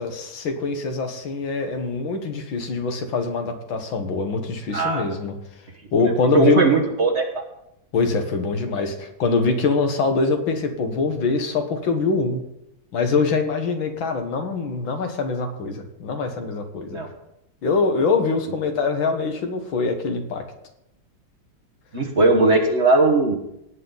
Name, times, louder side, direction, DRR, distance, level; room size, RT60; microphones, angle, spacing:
voice 1, 0.0-5.4 5.9-6.6 7.9-12.4 12.9-17.0 17.6-20.4, left 4 dB, 85° left, 6 dB, 2.2 m, -24 dB
voice 2, 4.7-5.0 6.3-7.4 16.9-17.1 21.9-23.4, right 2 dB, 40° right, 3 dB, 1.5 m, -18 dB
17.5 x 8.6 x 4.0 m, 0.84 s
omnidirectional pair, 2.1 m